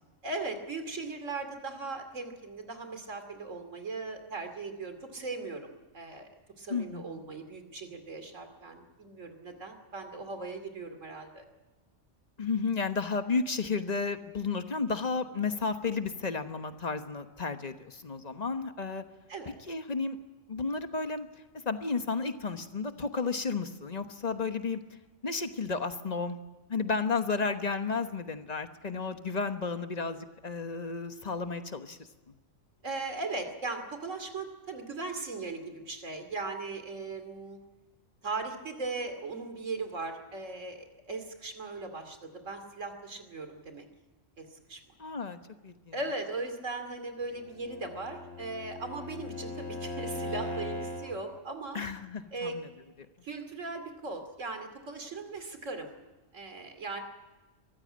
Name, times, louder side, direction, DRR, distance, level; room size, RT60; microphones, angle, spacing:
voice 1, 0.2-6.3 6.6-11.4 19.3-19.5 32.8-37.6 38.2-43.9 44.4-44.8 45.9-51.8 52.3-52.6 53.2-55.9 56.3-57.0, right 3 dB, 90° right, 7 dB, 2.9 m, -38 dB
voice 2, 6.7-7.2 12.4-19.0 19.7-20.2 20.5-21.3 21.6-24.8 25.2-26.4 26.7-32.0 45.0-45.9 51.7-52.7, left 4 dB, 35° left, 8 dB, 1.3 m, -32 dB
Bowed string instrument, 47.5-51.2, left 1 dB, 55° left, 2.3 m, -38 dB
23.0 x 15.0 x 8.7 m, 1.2 s
omnidirectional pair, 1.3 m